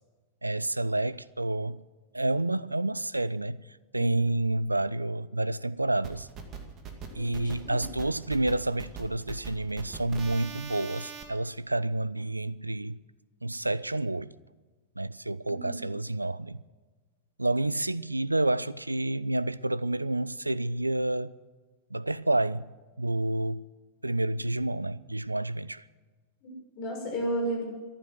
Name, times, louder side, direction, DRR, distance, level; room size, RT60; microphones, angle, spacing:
voice 1, 0.4-1.8 2.1-6.3 7.1-13.0 13.4-14.3 15.0-16.6 17.4-21.4 21.9-22.7 23.0-23.7 24.0-25.8, right 2 dB, 85° right, 0.4 m, -29 dB
sound 1, 6.0-11.2, right 5 dB, 35° right, 2.3 m, -41 dB
voice 2, 7.1-7.9 15.5-15.8 26.4-27.6, right 1 dB, 45° left, 6.4 m, -34 dB
14.5 x 11.5 x 7.9 m
figure-of-eight pair, 90°, 0 cm